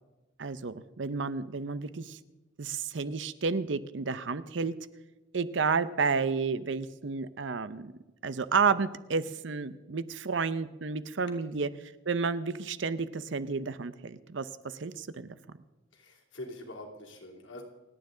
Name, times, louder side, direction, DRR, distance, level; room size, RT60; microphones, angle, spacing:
voice 1, 0.4-2.2 2.6-4.7 5.3-7.9 8.2-11.7 12.1-15.4, right 5 dB, 70° right, 14 dB, 0.7 m, -31 dB
voice 2, 15.9-17.6, left 1 dB, 80° left, 0 dB, 2.8 m, -44 dB
28.5 x 9.6 x 3.9 m, 1.1 s
head